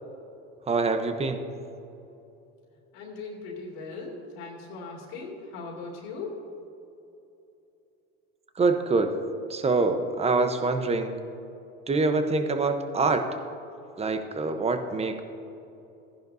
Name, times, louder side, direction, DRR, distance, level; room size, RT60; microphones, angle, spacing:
voice 1, 0.7-1.4 8.6-9.2 9.5-11.2 11.9-13.3 14.0-15.2, right 3 dB, 20° right, 8 dB, 0.9 m, -25 dB
voice 2, 2.9-6.5, left 3 dB, 75° left, -2 dB, 2.5 m, -39 dB
15.0 x 10.5 x 2.7 m, 2.8 s
supercardioid pair, 95°, 31 cm